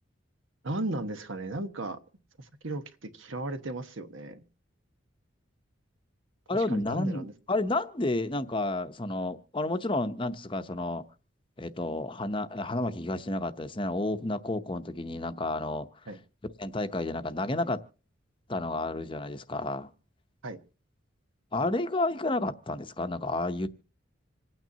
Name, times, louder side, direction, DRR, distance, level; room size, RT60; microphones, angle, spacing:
voice 1, 0.6-2.0 2.4-4.4 6.5-7.3 16.1-16.2 20.4-20.6, right 2 dB, 80° right, 1.2 m, -35 dB
voice 2, 6.5-11.0 11.6-15.9 16.6-17.8 18.5-19.9 21.5-23.7, left 2 dB, 25° left, 0.7 m, -31 dB
26.5 x 9.2 x 2.8 m
head